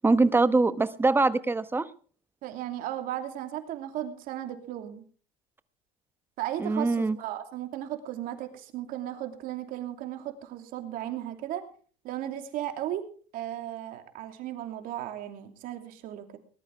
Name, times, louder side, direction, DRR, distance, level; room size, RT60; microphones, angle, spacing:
voice 1, 0.0-1.9 6.6-7.2, right 3 dB, 15° right, 12 dB, 1.1 m, -23 dB
voice 2, 2.4-5.0 6.4-11.6 12.0-13.1 13.3-16.4, right 12 dB, 60° right, 6 dB, 2.8 m, -35 dB
19.5 x 12.0 x 4.7 m, 0.43 s
supercardioid pair, 110°, 16 cm